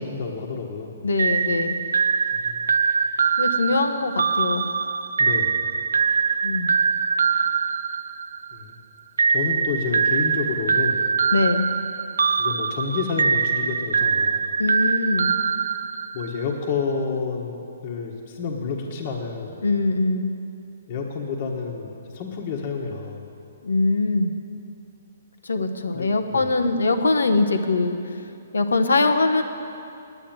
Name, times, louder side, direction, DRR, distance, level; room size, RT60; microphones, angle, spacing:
voice 1, 0.0-1.0 2.3-2.7 5.2-5.7 8.5-8.8 9.3-11.1 12.4-14.5 16.1-19.6 20.9-23.2 25.9-26.5, left 5 dB, 45° left, -1 dB, 1.3 m, -29 dB
voice 2, 1.0-1.7 3.4-4.7 6.4-6.7 11.3-11.7 14.6-15.4 19.6-20.4 23.6-24.3 25.4-28.2 28.5-29.4, left 3 dB, 90° left, 8 dB, 0.9 m, -22 dB
sound 1, 1.2-8.6 9.2-16.4, right 5 dB, 85° right, 0.4 m, -23 dB
9.1 x 9.1 x 8.9 m, 2.6 s
hypercardioid pair, 145°, 0 cm